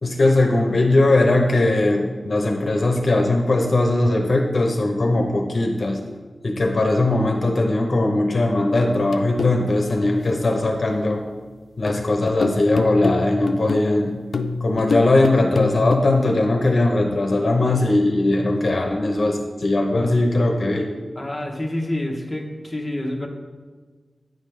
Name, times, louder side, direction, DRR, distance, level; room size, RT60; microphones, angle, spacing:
voice 1, 0.0-6.0 6.4-11.2 11.8-14.2 14.6-20.9, left 2 dB, 55° left, 2 dB, 0.7 m, -19 dB
sound 1, 8.9-10.9 11.9-16.0, left 3 dB, 80° left, 0.3 m, -27 dB
voice 2, 21.2-23.3, left 1 dB, 10° left, -1 dB, 0.9 m, -28 dB
9.1 x 5.1 x 3.2 m, 1.4 s
wide cardioid pair, 100°, 0 cm